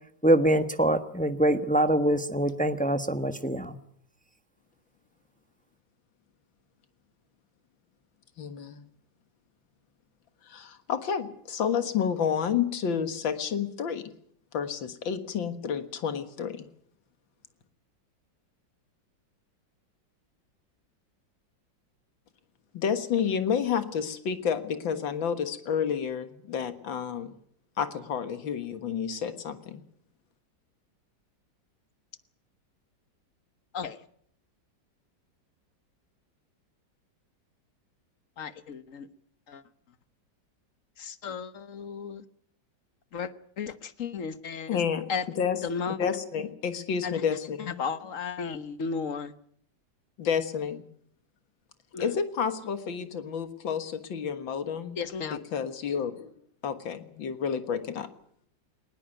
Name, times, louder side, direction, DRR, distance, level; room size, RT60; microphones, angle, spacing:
voice 1, 0.2-3.7, right 1 dB, 5° left, 10 dB, 0.9 m, -24 dB
voice 2, 8.4-8.8 10.5-14.1 14.5-16.7 22.7-27.3 27.8-29.8 44.7-47.7 50.2-50.8 52.0-55.0 55.3-56.3 56.6-58.1, left 7 dB, 90° left, 10 dB, 2.3 m, -30 dB
voice 3, 38.4-39.1 39.5-39.6 41.0-42.2 43.1-43.3 43.6-44.7 45.1-45.2 45.6-46.0 47.0-47.2 47.8-49.3 51.9-52.1 55.0-55.4, left 6 dB, 50° left, 13 dB, 1.4 m, -34 dB
20.0 x 20.0 x 9.1 m, 0.65 s
omnidirectional pair, 2.0 m